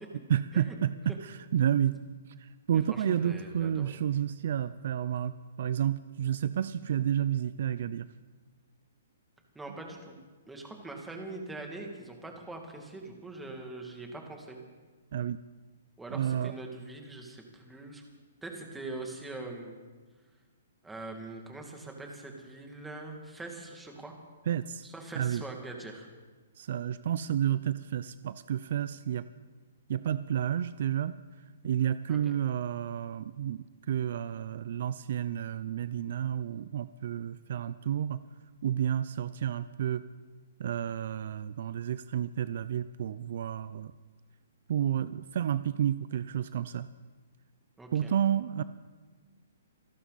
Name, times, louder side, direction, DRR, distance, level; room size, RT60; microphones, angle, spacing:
voice 1, 0.3-2.0 2.4-8.1 15.1-15.4 16.1-16.5 24.5-24.9 25.2-25.4 26.6-29.2 29.9-31.1 31.6-38.2 38.6-40.0 40.6-43.9 44.7-46.9 47.9-48.6, right 10 dB, 60° right, 14 dB, 0.5 m, -30 dB
voice 2, 2.7-4.0 9.5-10.1 10.5-14.6 16.0-18.0 18.4-19.8 20.8-24.1 24.8-26.1 32.1-32.3 47.8-48.1, right 2 dB, 5° right, 1 dB, 2.4 m, -43 dB
27.0 x 11.5 x 4.2 m, 1.3 s
hypercardioid pair, 155°, 0 cm